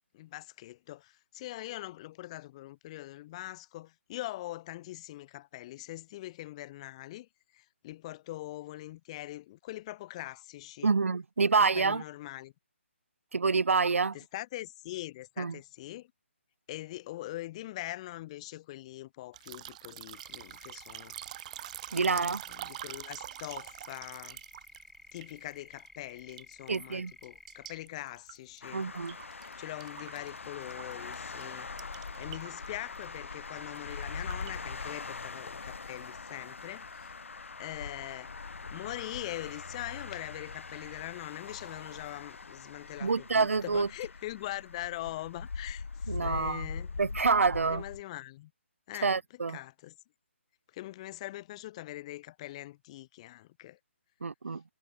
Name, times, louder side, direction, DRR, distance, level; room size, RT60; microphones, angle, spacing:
voice 1, 0.1-10.9 11.4-12.5 14.1-16.1 16.7-21.1 22.0-22.2 22.5-24.4 25.1-28.8 29.6-31.7 32.2-37.1 37.6-38.3 38.7-46.9 47.7-48.5 48.9-49.1 49.5-49.9 50.7-53.8, left 16 dB, 30° left, 1.3 m, -42 dB
voice 2, 10.8-12.0 13.3-14.2 15.4-15.6 21.9-22.4 26.7-27.1 28.7-29.2 43.0-43.9 46.1-46.7 47.0-47.8 49.0-49.6 54.2-54.6, right 4 dB, 80° right, 0.5 m, -27 dB
sound 1, 19.3-25.9 26.2-26.9 27.2-29.5 29.8-31.2 31.4-31.5 31.8-32.7 33.0-33.2 33.6-34.6, right 13 dB, 30° right, 2.4 m, -45 dB
sound 2, 20.1-27.9, left 3 dB, 5° left, 3.9 m, -55 dB
sound 3, 28.6-48.0, left 4 dB, 75° left, 1.3 m, -42 dB
figure-of-eight pair, 150°, 7 cm